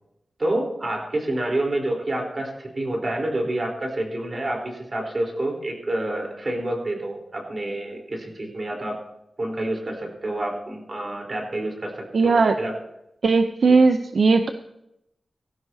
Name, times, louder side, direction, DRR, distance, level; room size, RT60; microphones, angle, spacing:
voice 1, 0.4-9.0 9.4-12.7 13.7-13.8, right 1 dB, 35° right, 0 dB, 3.9 m, -28 dB
voice 2, 12.1-12.5 13.2-14.5, right 4 dB, 70° right, 7 dB, 0.6 m, -18 dB
18.5 x 15.5 x 2.8 m, 0.82 s
wide cardioid pair, 135°, 0 cm